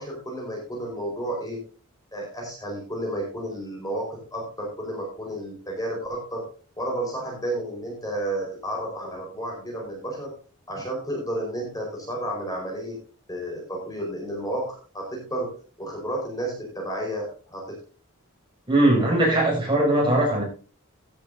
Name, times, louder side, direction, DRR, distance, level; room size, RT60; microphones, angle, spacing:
voice 1, 0.0-1.6 2.1-6.4 6.8-10.3 10.7-13.0 13.3-17.8, right 1 dB, 15° left, 5.0 m, -32 dB
voice 2, 18.7-20.4, right 1 dB, 20° right, 6.5 m, -20 dB
16.0 x 10.0 x 2.8 m
head